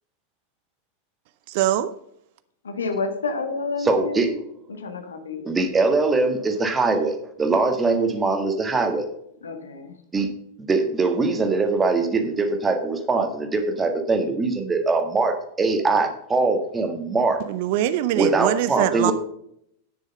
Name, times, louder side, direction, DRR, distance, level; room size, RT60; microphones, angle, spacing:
voice 1, 1.5-1.9 17.5-19.1, right 12 dB, 50° right, 0.6 m, -23 dB
voice 2, 2.6-4.4 4.7-5.5 9.4-10.0, left 4 dB, 70° left, 1.5 m, -29 dB
voice 3, 3.8-4.3 5.5-9.0 10.1-10.3 10.7-17.4 18.2-19.1, right 3 dB, 15° right, 1.7 m, -22 dB
10.5 x 6.4 x 5.3 m
figure-of-eight pair, 90°, 0 cm